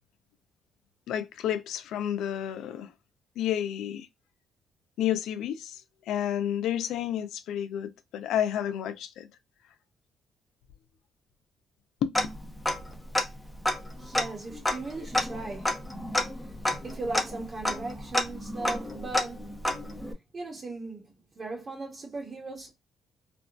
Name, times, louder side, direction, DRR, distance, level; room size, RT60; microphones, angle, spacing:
voice 1, 1.1-2.9 3.4-4.1 5.0-9.3 12.0-12.1, left 10 dB, 85° left, 0.5 m, -30 dB
Tick-tock, 12.1-12.9 13.1-13.2 13.6-20.1, left 1 dB, 10° left, 0.8 m, -30 dB
voice 2, 14.0-15.7 16.4-16.5 16.8-19.5 20.3-21.1 21.3-22.7, right 3 dB, 40° right, 1.2 m, -38 dB
3.5 x 2.2 x 2.4 m
cardioid pair, 90°, 0 cm